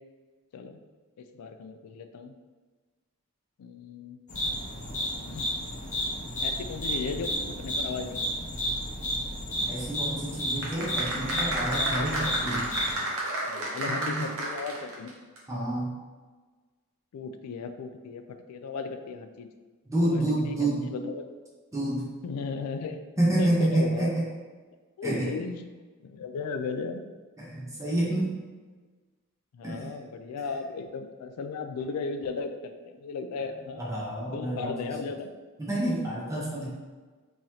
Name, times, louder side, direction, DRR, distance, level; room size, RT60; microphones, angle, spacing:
voice 1, 1.2-2.3 3.6-4.2 5.3-5.5 6.4-7.3 7.6-8.2 13.5-15.1 17.1-19.5 20.0-21.2 22.2-23.1 23.4-24.1 25.0-25.7 26.0-27.1 29.5-33.9 34.3-35.3, left 4 dB, 85° left, 7 dB, 0.3 m, -36 dB
sound 1, 4.3-12.9, equal, 35° left, 0.9 m, -32 dB
voice 2, 9.7-12.7 13.9-14.3 15.5-15.9 19.9-20.9 21.7-22.1 23.2-24.3 25.0-25.3 27.4-28.4 29.6-30.0 33.8-34.9 35.6-36.7, right 1 dB, 15° right, -6 dB, 0.8 m, -28 dB
sound 2, 10.6-15.1 15.4-15.5, right 1 dB, 65° right, 0.8 m, -31 dB
3.8 x 3.0 x 2.8 m, 1.4 s
head